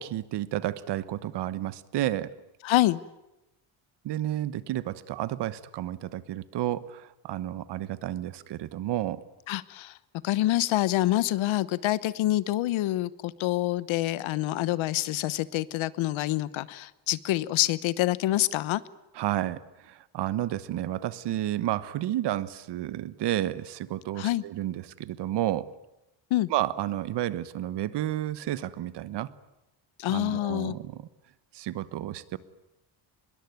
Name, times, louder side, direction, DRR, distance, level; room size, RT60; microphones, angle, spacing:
voice 1, 0.0-2.3 4.0-9.2 19.1-25.7 26.5-29.3 30.1-31.1 31.5-32.4, right 13 dB, 60° right, 16 dB, 1.2 m, -31 dB
voice 2, 2.6-3.0 9.5-9.9 10.2-18.8 24.2-24.4 26.3-26.5 30.0-30.7, left 15 dB, 80° left, 18 dB, 1.1 m, -26 dB
25.0 x 22.0 x 9.4 m, 0.92 s
cardioid pair, 180°, 46 cm